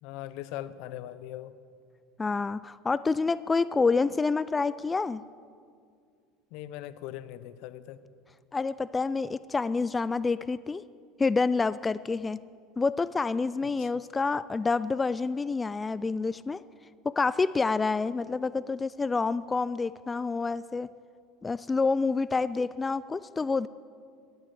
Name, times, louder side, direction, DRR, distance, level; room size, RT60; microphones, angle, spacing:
voice 1, 0.0-1.5 6.5-8.0 13.8-13.9, left 13 dB, 70° left, 15 dB, 0.7 m, -40 dB
voice 2, 2.2-5.2 8.5-10.8 11.2-12.4 12.8-16.6 17.1-20.9 21.4-23.7, left 4 dB, 20° left, 17 dB, 0.3 m, -28 dB
13.5 x 10.5 x 8.3 m, 2.2 s
supercardioid pair, 100°, 0 cm